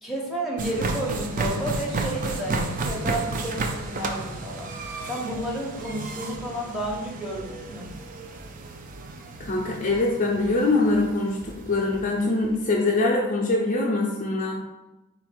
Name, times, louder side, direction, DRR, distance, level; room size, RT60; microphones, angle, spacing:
voice 1, 0.0-4.7 5.1-7.9, right 1 dB, ahead, -4 dB, 0.8 m, -31 dB
sound 1, 0.6-12.6, right 3 dB, 35° right, 0.3 m, -33 dB
voice 2, 9.4-14.6, left 2 dB, 35° left, -2 dB, 0.5 m, -23 dB
3.8 x 2.5 x 4.4 m, 1.0 s
head